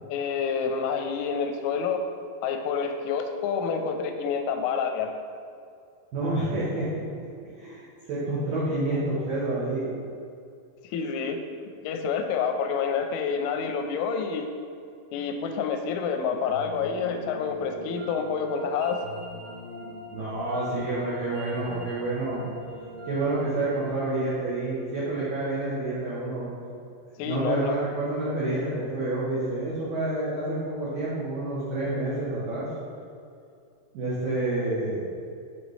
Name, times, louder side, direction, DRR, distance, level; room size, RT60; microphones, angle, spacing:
voice 1, 0.1-2.0 2.4-5.1 10.9-11.4 11.8-14.5 15.1-19.0 27.2-27.7, left 6 dB, 90° left, 5 dB, 3.1 m, -28 dB
voice 2, 6.1-7.0 7.4-9.9 20.1-22.5 23.0-26.5 27.2-32.7 33.9-35.1, right 2 dB, 80° right, -9 dB, 1.9 m, -28 dB
sound 1, 16.5-25.6, equal, 65° right, 2.6 m, -42 dB
7.3 x 5.1 x 3.2 m, 2.4 s
omnidirectional pair, 5.5 m